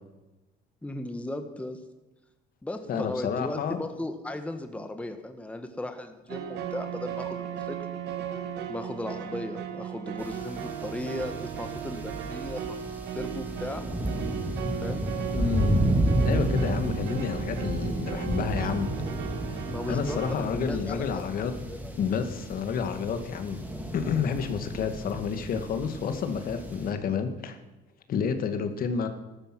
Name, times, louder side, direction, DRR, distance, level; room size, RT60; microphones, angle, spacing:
voice 1, 0.8-1.8 2.6-7.8 8.7-13.8 14.8-15.0 19.6-21.2 21.7-21.9, left 1 dB, 10° left, 7 dB, 1.3 m, -36 dB
voice 2, 2.9-3.8 15.3-15.8 16.2-18.9 19.5-21.5 22.0-23.6 23.9-27.6 28.1-29.1, left 6 dB, 60° left, 8 dB, 1.8 m, -30 dB
sound 1, 6.3-20.4, right 9 dB, 85° right, 1.8 m, -36 dB
sound 2, 10.2-26.9, right 1 dB, 10° right, 2.9 m, -32 dB
14.0 x 12.5 x 6.1 m, 1.1 s
cardioid pair, 110°, 17 cm